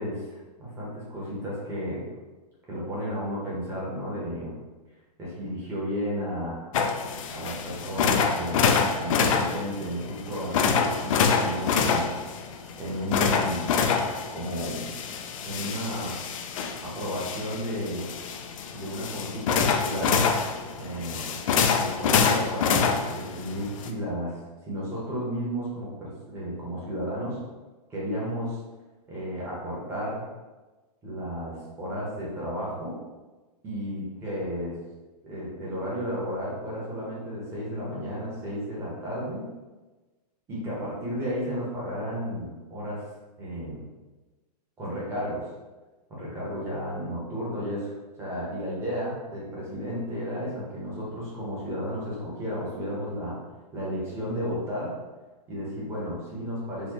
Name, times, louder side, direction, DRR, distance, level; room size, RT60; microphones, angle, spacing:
voice 1, 0.0-2.0 2.7-4.5 5.2-6.7 7.3-12.1 12.8-13.7 14.3-14.9 15.4-16.2 16.8-18.1 18.7-20.2 20.7-21.3 21.8-24.3 24.6-27.4 27.9-28.6 29.1-30.2 31.0-33.0 33.6-34.8 35.2-39.4 40.5-43.0 43.4-43.8 44.8-45.4 46.1-47.9 48.2-53.4 53.7-54.9 55.5-56.9, equal, 10° right, -7 dB, 1.0 m, -33 dB
sound 1, 6.7-23.9, left 6 dB, 55° left, 0.4 m, -26 dB
4.2 x 2.3 x 2.9 m, 1.2 s
hypercardioid pair, 155°, 21 cm